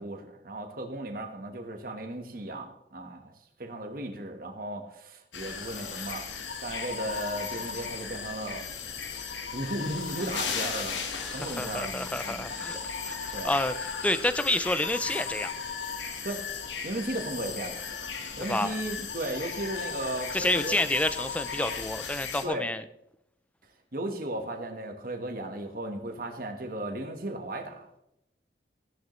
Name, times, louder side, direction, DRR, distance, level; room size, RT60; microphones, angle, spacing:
voice 1, 0.0-3.3 3.6-6.3 6.6-8.7 9.5-12.9 13.3-13.5 16.2-16.5 16.8-17.8 18.4-20.8 22.4-22.7 23.9-27.9, right 1 dB, 50° right, 4 dB, 1.3 m, -36 dB
sound 1, 5.3-22.4, left 6 dB, 90° left, 1.4 m, -36 dB
voice 2, 11.2-12.8 13.1-15.5 18.5-18.7 20.3-22.8, left 1 dB, 10° left, 12 dB, 0.4 m, -29 dB
15.0 x 10.5 x 3.2 m, 0.80 s
head